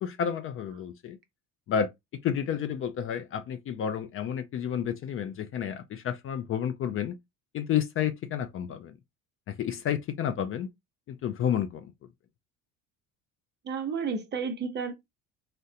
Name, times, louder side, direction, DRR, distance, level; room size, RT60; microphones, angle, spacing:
voice 1, 0.0-1.2 1.7-1.9 2.2-7.2 7.5-9.0 9.5-10.7 11.1-11.9, left 8 dB, 40° left, 0.4 m, -30 dB
voice 2, 13.6-14.9, right 5 dB, 30° right, 0.7 m, -31 dB
3.6 x 2.1 x 2.7 m
cardioid pair, 125°, 33 cm